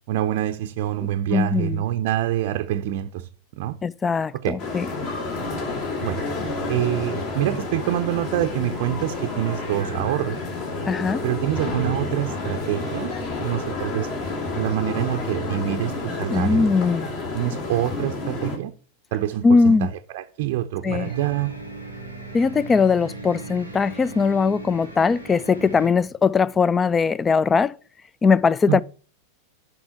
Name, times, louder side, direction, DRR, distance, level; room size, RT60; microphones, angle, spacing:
voice 1, 0.1-3.3 3.6-3.8 4.4-4.6 6.0-6.3 6.7-10.4 11.2-14.1 14.6-16.7 17.3-18.7 19.1-21.6 28.7-28.8, right 13 dB, 50° right, 0.5 m, -26 dB
voice 2, 1.3-1.8 3.8-4.9 10.9-11.2 16.3-17.1 19.4-19.9 20.8-21.1 22.3-27.7 28.2-28.8, left 5 dB, 15° left, 0.3 m, -20 dB
sound 1, 4.6-18.6, left 3 dB, 45° left, 2.7 m, -30 dB
sound 2, 20.8-25.9, right 3 dB, 85° left, 1.9 m, -37 dB
7.6 x 5.7 x 5.8 m
figure-of-eight pair, 90°, 0 cm